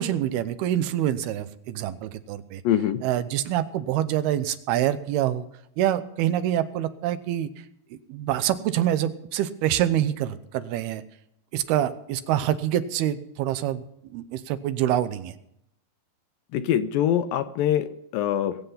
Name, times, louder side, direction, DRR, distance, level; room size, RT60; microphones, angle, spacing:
voice 1, 0.0-2.6 3.0-5.4 5.8-7.5 8.1-11.0 11.5-13.8 14.1-15.3, right 12 dB, 80° right, 12 dB, 2.7 m, -26 dB
voice 2, 2.6-3.0 16.5-18.6, left 10 dB, 75° left, 10 dB, 2.2 m, -24 dB
21.0 x 8.3 x 5.7 m, 0.76 s
omnidirectional pair, 4.5 m